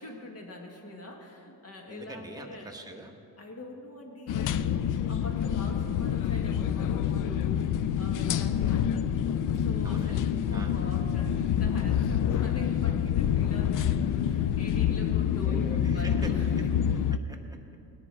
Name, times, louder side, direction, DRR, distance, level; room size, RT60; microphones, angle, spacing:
voice 1, 0.0-2.7 3.4-7.7 8.0-9.1 9.6-15.6 15.9-16.8, left 1 dB, 35° left, 2 dB, 1.7 m, -44 dB
voice 2, 1.9-3.1 9.8-10.2 10.5-10.7 14.9-15.0 15.3-16.3 17.3-17.8, right 2 dB, 10° right, 1 dB, 1.2 m, -43 dB
sound 1, 4.3-17.2, left 9 dB, 55° left, 0.5 m, -27 dB
18.5 x 10.0 x 4.8 m, 2.6 s
cardioid pair, 130°, 40 cm